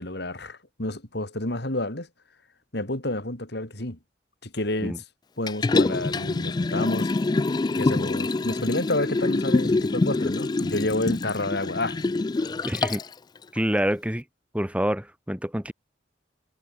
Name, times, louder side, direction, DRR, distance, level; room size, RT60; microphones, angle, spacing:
voice 1, 0.0-2.1 2.7-4.0 4.4-5.0 5.4-7.1 7.8-12.0, left 1 dB, 60° left, 4.0 m, -29 dB
Liquid, 5.5-13.1 13.6-13.7, left 3 dB, 25° left, 0.3 m, -25 dB
voice 2, 12.6-13.0 13.5-14.2 14.5-15.7, equal, 5° right, 4.0 m, -27 dB
head